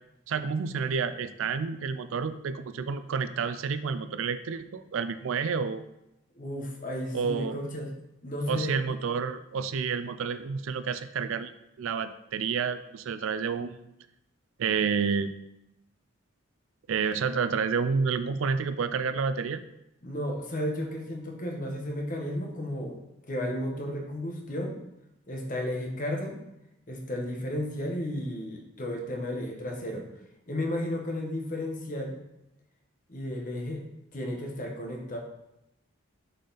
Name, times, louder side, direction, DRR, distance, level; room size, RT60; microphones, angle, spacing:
voice 1, 0.3-5.8 7.1-7.6 8.5-11.5 11.8-13.9 14.6-15.4 16.9-19.6, right 5 dB, 70° right, 12 dB, 0.4 m, -29 dB
voice 2, 6.4-7.9 8.2-8.8 20.0-23.0 23.3-24.8 25.3-26.4 26.9-30.0 30.5-32.2 33.1-33.8 34.1-35.2, left 1 dB, 40° left, 1 dB, 1.0 m, -33 dB
6.4 x 4.1 x 4.0 m, 0.86 s
head